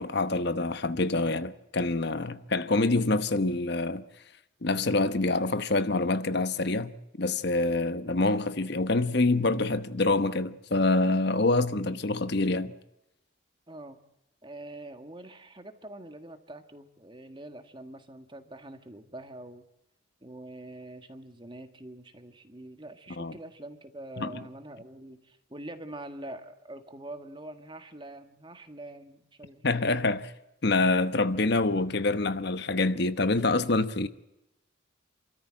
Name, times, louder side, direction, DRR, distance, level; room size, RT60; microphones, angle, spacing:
voice 1, 0.0-4.0 4.6-12.7 23.2-23.3 24.2-24.3 29.6-30.3 30.6-34.1, left 2 dB, 55° left, 1.0 m, -26 dB
voice 2, 13.7-14.0 14.4-19.6 20.2-29.9, right 1 dB, 25° right, 1.7 m, -44 dB
28.5 x 13.5 x 8.7 m
head